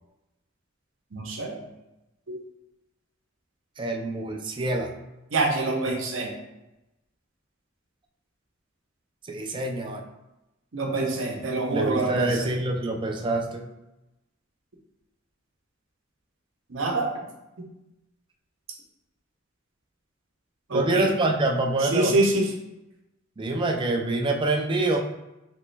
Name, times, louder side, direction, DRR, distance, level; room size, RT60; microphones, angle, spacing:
voice 1, 1.1-1.5 2.3-2.4 5.3-6.3 10.7-12.5 16.7-17.1 20.7-21.1 21.9-22.5, right 2 dB, 70° right, 0 dB, 0.8 m, -25 dB
voice 2, 3.8-4.9 9.3-10.0 11.7-13.7 20.7-22.2 23.4-25.0, right 2 dB, 25° right, 3 dB, 0.4 m, -26 dB
3.1 x 3.1 x 3.2 m, 0.95 s
head